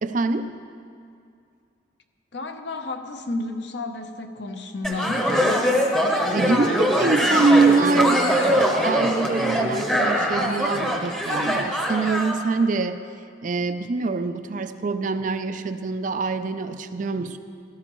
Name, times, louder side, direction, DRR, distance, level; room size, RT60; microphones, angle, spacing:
voice 1, 0.0-0.5 6.1-13.0 13.4-17.4, right 4 dB, 40° right, 10 dB, 0.4 m, -24 dB
voice 2, 2.3-5.7, left 2 dB, 60° left, 6 dB, 0.8 m, -32 dB
sound 1, 4.8-12.4, equal, 5° left, 0.8 m, -22 dB
16.0 x 13.0 x 3.0 m, 2.4 s
head